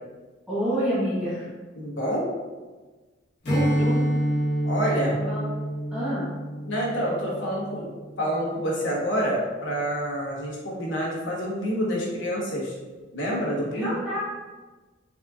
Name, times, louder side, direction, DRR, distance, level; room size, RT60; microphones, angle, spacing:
voice 1, 0.5-1.5 3.4-4.0 5.1-5.4 5.9-6.3 13.8-14.2, equal, 5° right, -12 dB, 0.9 m, -28 dB
voice 2, 1.8-2.3 4.6-5.2 6.6-7.9 8.2-12.8 13.1-14.0, equal, 75° left, -4 dB, 1.1 m, -27 dB
Strum, 3.4-8.2, equal, 55° left, 1.3 m, -27 dB
4.1 x 3.6 x 2.4 m, 1.3 s
head